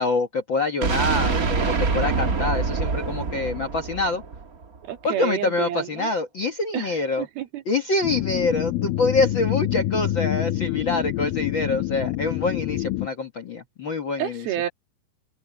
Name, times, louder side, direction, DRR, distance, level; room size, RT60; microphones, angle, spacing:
voice 1, 0.0-4.2 5.0-7.2 7.7-14.4, left 3 dB, 50° left, 1.4 m, -25 dB
sound 1, 0.8-4.8, right 4 dB, 50° right, 1.0 m, -25 dB
voice 2, 4.8-6.1 6.7-7.6 14.2-14.7, right 12 dB, 80° right, 3.9 m, -30 dB
sound 2, 8.0-13.1, left 15 dB, 75° left, 2.4 m, -27 dB
omnidirectional pair, 4.3 m